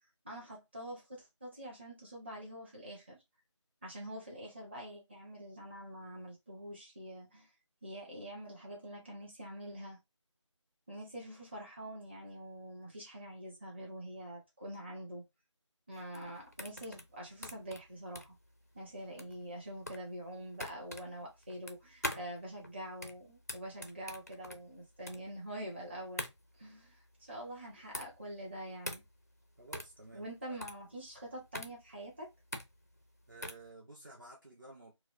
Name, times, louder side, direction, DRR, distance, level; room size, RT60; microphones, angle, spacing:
voice 1, 0.2-3.2 3.8-7.5 7.8-10.0 10.9-15.2 15.9-18.4 18.7-26.3 26.6-27.0 27.3-29.0 30.1-32.3, right 1 dB, 20° right, 1.0 m, -45 dB
sound 1, 15.9-33.7, left 1 dB, 30° left, 0.4 m, -45 dB
voice 2, 29.6-30.6 33.3-34.9, right 2 dB, 40° right, 0.8 m, -53 dB
4.5 x 2.0 x 2.5 m
figure-of-eight pair, 175°, 16 cm